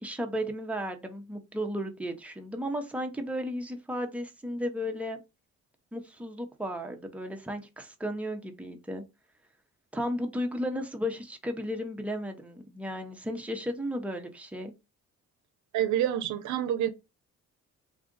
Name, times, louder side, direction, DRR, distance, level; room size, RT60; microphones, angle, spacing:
voice 1, 0.0-5.2 5.9-9.0 9.9-14.7, equal, 5° right, 0.8 m, -34 dB
voice 2, 15.7-16.9, right 11 dB, 75° right, 0.6 m, -27 dB
3.7 x 2.4 x 3.8 m
cardioid pair, 90°, 30 cm